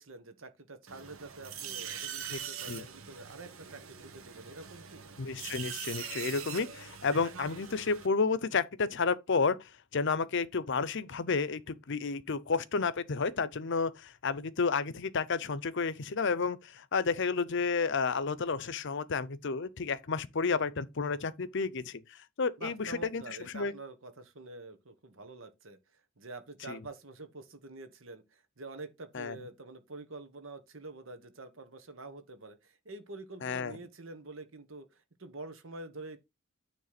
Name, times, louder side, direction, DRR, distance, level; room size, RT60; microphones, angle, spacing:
voice 1, 0.0-5.1 22.6-25.8 26.2-36.2, right 2 dB, 65° right, 1.4 m, -47 dB
sound 1, 0.9-8.1, right 8 dB, 85° right, 1.2 m, -43 dB
voice 2, 5.2-22.0 22.4-23.7 26.7-26.8 29.1-29.4 33.4-33.8, left 4 dB, 60° left, 0.7 m, -31 dB
9.4 x 3.3 x 5.9 m
head